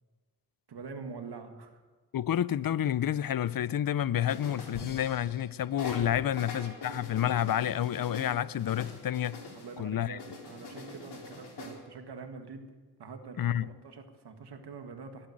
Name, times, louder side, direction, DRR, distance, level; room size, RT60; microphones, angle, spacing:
voice 1, 0.7-1.8 6.2-6.3 9.5-12.7 13.0-15.3, right 5 dB, 90° right, 1.7 m, -45 dB
voice 2, 2.1-9.4 9.8-10.2 13.4-13.7, left 10 dB, 60° left, 0.6 m, -29 dB
sound 1, 4.3-5.5 5.8-9.8 10.2-11.8, left 3 dB, 85° left, 3.9 m, -44 dB
20.0 x 8.9 x 7.7 m
cardioid pair, 60°, 39 cm